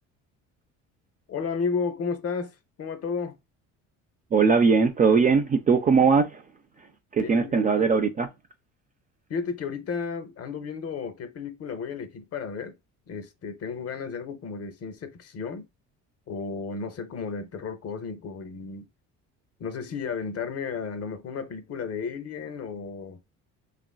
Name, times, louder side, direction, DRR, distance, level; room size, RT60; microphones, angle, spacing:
voice 1, 1.3-3.4 7.2-7.9 9.3-12.8 13.1-15.7 16.3-18.9 19.6-23.2, left 5 dB, 40° left, 0.7 m, -33 dB
voice 2, 4.3-6.4 7.1-8.3, right 5 dB, 25° right, 0.3 m, -20 dB
3.0 x 2.5 x 2.2 m
supercardioid pair, 80°, 36 cm